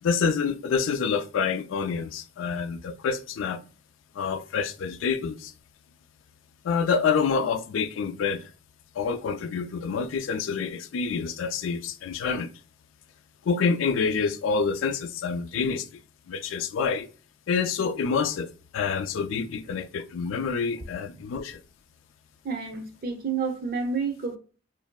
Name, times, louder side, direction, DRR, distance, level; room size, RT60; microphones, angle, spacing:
voice 1, 0.0-3.6 4.1-5.5 6.6-8.5 8.9-12.5 13.4-15.9 16.3-17.1 17.5-21.6, left 5 dB, 70° left, 0.3 m, -27 dB
voice 2, 22.4-24.4, right 5 dB, 50° right, 0.6 m, -29 dB
3.1 x 2.5 x 2.2 m
head